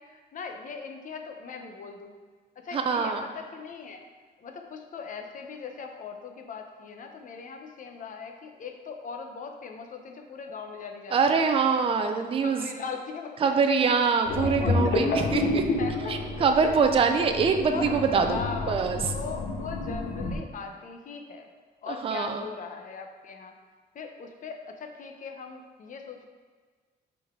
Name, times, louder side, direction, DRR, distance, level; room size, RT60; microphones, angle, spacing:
voice 1, 0.0-2.2 2.6-4.0 4.4-11.5 12.0-13.8 14.4-14.9 15.8-16.2 17.7-17.9 18.3-21.5 21.8-23.5 23.9-26.3, left 5 dB, 50° left, 4 dB, 0.7 m, -39 dB
voice 2, 2.7-3.3 11.1-12.7 13.4-15.6 16.1-18.4 18.7-19.0 21.9-22.4, right 5 dB, 30° right, 5 dB, 0.4 m, -24 dB
sound 1, 14.2-20.3, left 3 dB, 90° left, 1.0 m, -29 dB
8.6 x 3.9 x 3.6 m, 1.5 s
cardioid pair, 155°, 18 cm